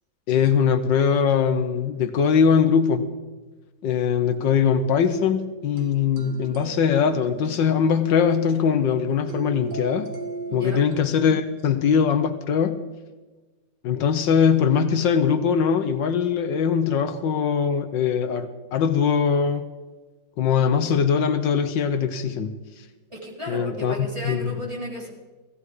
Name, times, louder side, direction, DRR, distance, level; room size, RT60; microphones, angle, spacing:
voice 1, 0.3-3.1 3.8-10.1 10.5-12.8 13.8-19.6 20.4-22.8 23.5-24.6, left 7 dB, 75° left, 9 dB, 1.6 m, -21 dB
sound 1, 5.8-10.9, right 4 dB, 65° right, 1.9 m, -38 dB
voice 2, 10.5-10.8 23.1-25.1, equal, 15° right, -4 dB, 4.5 m, -34 dB
17.5 x 15.5 x 4.8 m, 1.2 s
omnidirectional pair, 2.0 m